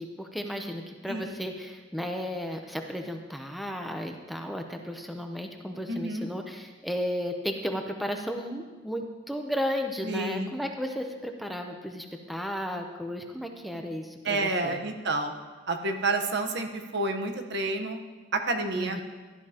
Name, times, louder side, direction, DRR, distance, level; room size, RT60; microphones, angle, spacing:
voice 1, 0.0-14.8 18.8-19.0, equal, ahead, 4 dB, 0.6 m, -34 dB
voice 2, 5.9-6.3 10.0-10.5 14.2-15.3 15.7-18.0 18.3-19.0, right 2 dB, 60° right, 5 dB, 1.0 m, -29 dB
16.0 x 12.0 x 2.9 m, 1.3 s
head